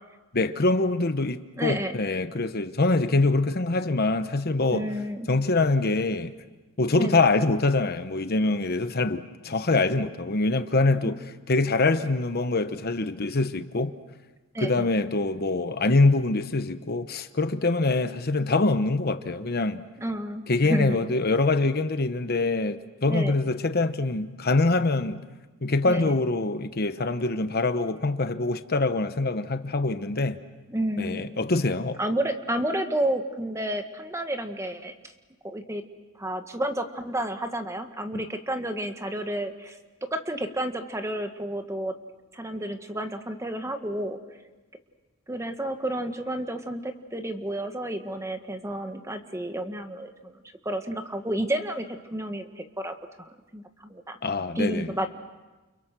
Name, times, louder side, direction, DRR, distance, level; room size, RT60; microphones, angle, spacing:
voice 1, 0.3-4.9 5.3-6.3 6.8-11.2 11.5-13.9 14.6-19.8 20.5-25.2 25.6-30.4 31.0-32.0 54.2-54.9, left 3 dB, 50° left, 1.1 m, -24 dB
voice 2, 1.6-2.0 4.7-5.3 7.0-7.2 11.0-11.1 14.5-14.9 20.0-21.0 23.1-23.3 25.9-26.2 30.7-31.2 32.0-34.9 35.4-35.8 36.1-39.8 40.1-41.9 42.3-44.2 45.3-54.2 54.5-55.1, right 1 dB, 15° right, 1.6 m, -31 dB
29.5 x 29.5 x 6.2 m
head